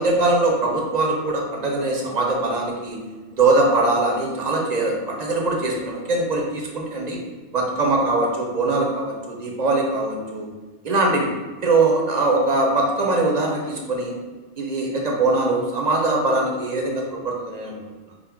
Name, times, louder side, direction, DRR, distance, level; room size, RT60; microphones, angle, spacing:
voice 1, 0.0-3.0 3.3-7.2 7.5-10.5 10.8-11.3 11.6-14.1 14.6-17.8, right 2 dB, 45° right, 0 dB, 0.6 m, -22 dB
3.8 x 2.1 x 4.4 m, 1.3 s
omnidirectional pair, 1.2 m